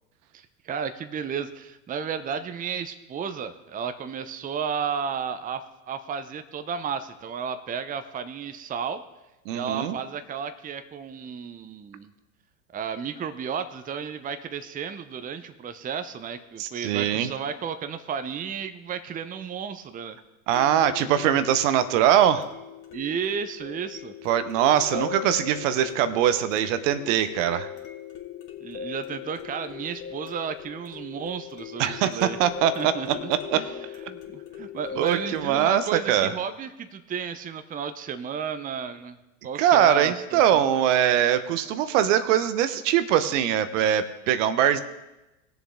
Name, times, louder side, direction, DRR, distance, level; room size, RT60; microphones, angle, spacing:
voice 1, 0.3-9.0 9.5-12.1 12.7-20.2 21.2-21.3 22.9-24.1 24.9-25.1 28.6-32.4 32.8-39.2 39.4-40.7, right 7 dB, 20° right, 10 dB, 0.7 m, -33 dB
voice 2, 9.5-10.0 16.6-17.3 20.5-22.4 24.2-27.7 31.8-32.9 33.5-33.6 35.0-36.3 39.6-44.8, right 10 dB, 60° right, 12 dB, 0.9 m, -22 dB
sound 1, 15.8-15.9 20.5-35.7, left 9 dB, 45° left, 2.2 m, -39 dB
19.0 x 7.0 x 3.7 m, 0.98 s
hypercardioid pair, 90°, 42 cm